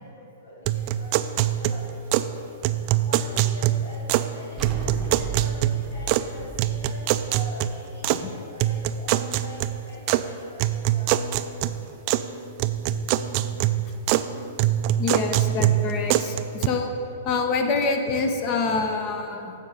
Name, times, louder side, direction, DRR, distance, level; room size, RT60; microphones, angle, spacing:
voice 1, 0.0-2.5 3.1-11.9, equal, 90° left, -4 dB, 1.5 m, -44 dB
sound 1, 0.7-2.3 2.6-4.3 4.6-6.3 6.6-8.2 8.6-10.2 10.6-12.3 12.6-14.3 14.6-16.7, right 12 dB, 45° right, 0.3 m, -24 dB
sound 2, 4.6-8.0, right 5 dB, 25° right, 0.8 m, -35 dB
voice 2, 15.0-16.9 17.2-19.6, left 4 dB, 40° left, 5 dB, 1.0 m, -26 dB
8.3 x 4.6 x 6.4 m, 2.8 s
hypercardioid pair, 120°, 0 cm